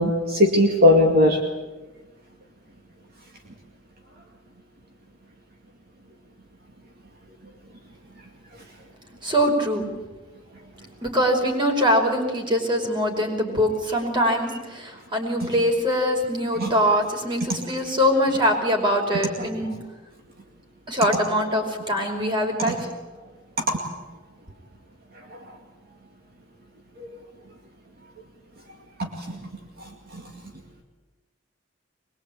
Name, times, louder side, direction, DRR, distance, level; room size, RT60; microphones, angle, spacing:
voice 1, 0.0-1.4 16.6-16.7 19.4-19.5 23.7-23.8 29.0-29.4, left 1 dB, 55° right, 1 dB, 2.3 m, -19 dB
voice 2, 9.2-9.9 11.0-19.7 20.9-22.9, equal, 25° right, 2 dB, 5.3 m, -23 dB
23.0 x 22.0 x 8.7 m, 1.2 s
head